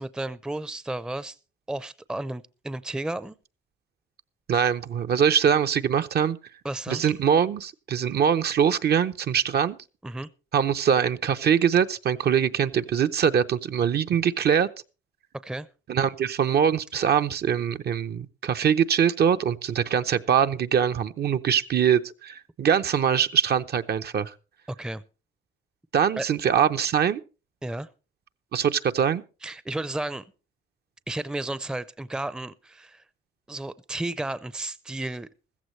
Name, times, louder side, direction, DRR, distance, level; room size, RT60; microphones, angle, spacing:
voice 1, 0.0-1.4 1.7-3.3 6.6-7.1 10.0-10.3 15.4-15.7 24.7-25.0 26.2-26.3 27.6-27.9 29.4-30.2 31.1-33.0 33.5-35.3, right 2 dB, 5° right, 0.5 m, -33 dB
voice 2, 4.5-6.4 6.9-9.8 10.5-14.7 15.9-24.3 25.9-27.2 28.5-29.2, right 8 dB, 55° right, 0.7 m, -23 dB
14.5 x 14.5 x 3.2 m
cardioid pair, 90°, 20 cm